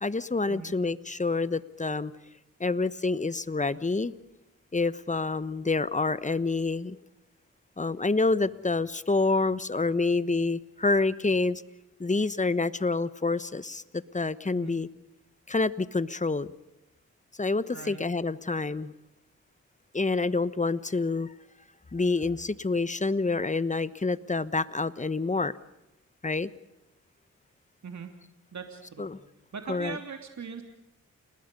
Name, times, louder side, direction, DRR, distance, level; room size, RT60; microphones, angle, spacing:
voice 1, 0.0-2.1 2.6-4.1 4.7-7.0 7.8-11.6 12.0-14.9 15.5-16.5 17.4-18.9 19.9-21.3 21.9-25.5 26.2-26.5 29.0-29.2 29.6-30.0, left 3 dB, 25° left, 16 dB, 1.1 m, -27 dB
voice 2, 17.7-18.0 27.8-28.1 28.5-29.1 29.5-30.6, right 5 dB, 60° right, 5 dB, 3.0 m, -40 dB
29.5 x 20.0 x 5.4 m, 0.91 s
cardioid pair, 60°, 32 cm